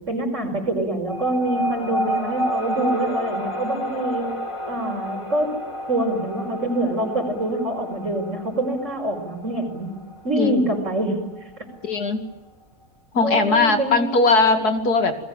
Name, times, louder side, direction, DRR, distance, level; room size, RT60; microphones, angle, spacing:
voice 1, 0.0-4.2 4.7-5.5 5.9-9.9 10.2-11.3 13.2-14.1, right 1 dB, 50° right, 4 dB, 5.9 m, -25 dB
sound 1, 1.1-12.0, equal, 20° left, 2.2 m, -30 dB
voice 2, 11.8-12.2 13.1-15.2, left 3 dB, 80° left, 6 dB, 2.9 m, -19 dB
30.0 x 22.0 x 8.9 m, 1.1 s
omnidirectional pair, 1.6 m